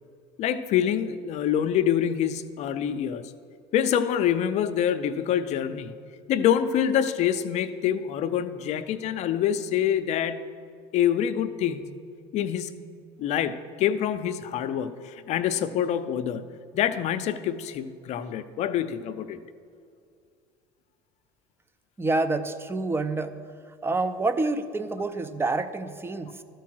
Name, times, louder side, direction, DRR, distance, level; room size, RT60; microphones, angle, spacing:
voice 1, 0.4-3.2 3.7-5.9 6.3-10.5 10.9-11.9 12.3-12.7 13.2-16.4 16.7-19.4, left 9 dB, 55° left, 11 dB, 0.6 m, -26 dB
voice 2, 22.0-23.4 23.7-26.4, right 3 dB, 15° right, 10 dB, 0.6 m, -28 dB
13.0 x 4.6 x 6.2 m, 2.3 s
hypercardioid pair, 80°, 14 cm